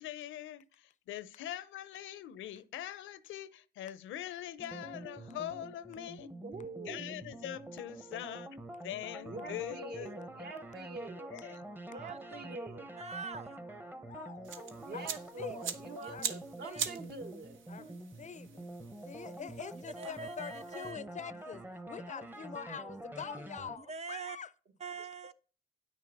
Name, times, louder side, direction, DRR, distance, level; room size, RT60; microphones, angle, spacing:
voice 1, 0.0-6.3 6.8-8.6 8.8-10.2 11.3-11.6, left 12 dB, 80° left, 0.7 m, -43 dB
sound 1, 4.6-23.8, right 1 dB, 10° right, 0.8 m, -47 dB
voice 2, 6.4-7.2 9.2-11.4 11.9-12.9 14.8-17.6, right 3 dB, 55° right, 1.4 m, -45 dB
voice 3, 11.9-12.4 13.0-13.6 16.0-16.1 16.6-16.8 17.9-18.0 20.0-21.0 23.8-24.4 24.8-25.3, right 5 dB, 35° right, 0.4 m, -44 dB
voice 4, 14.1-15.0 15.4-15.8 16.1-16.3 16.7-16.9 17.7-18.6 19.0-24.5, left 7 dB, 40° left, 0.5 m, -45 dB
sound 2, 14.4-20.9, right 7 dB, 75° right, 1.2 m, -43 dB
9.0 x 6.3 x 5.4 m
cardioid pair, 90°, 20 cm